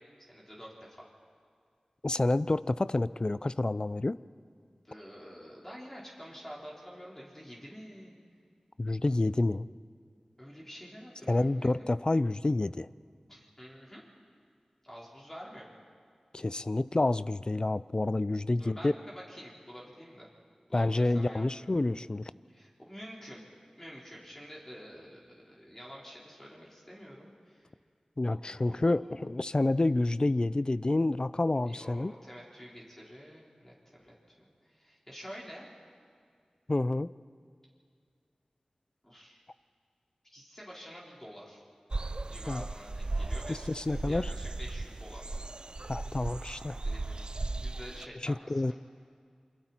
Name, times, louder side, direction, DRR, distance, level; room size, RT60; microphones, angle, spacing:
voice 1, 0.3-1.1 4.8-8.2 10.4-11.9 13.3-14.0 14.8-15.7 18.6-20.3 20.7-21.5 22.5-23.4 23.8-27.7 28.3-29.3 31.6-35.7 39.0-39.4 40.2-41.6 42.3-43.8 44.0-45.5 46.7-48.7, equal, 15° left, -5 dB, 4.7 m, -48 dB
voice 2, 2.0-4.2 8.8-9.7 11.3-12.9 16.3-18.9 20.7-22.3 28.2-32.1 36.7-37.1 42.5-42.6 43.5-44.3 45.9-46.8 48.2-48.7, left 2 dB, 45° left, 17 dB, 0.5 m, -28 dB
sound 1, 41.9-48.1, right 2 dB, 45° right, 0.4 m, -36 dB
28.0 x 22.5 x 4.5 m, 2.2 s
cardioid pair, 40°, 2 cm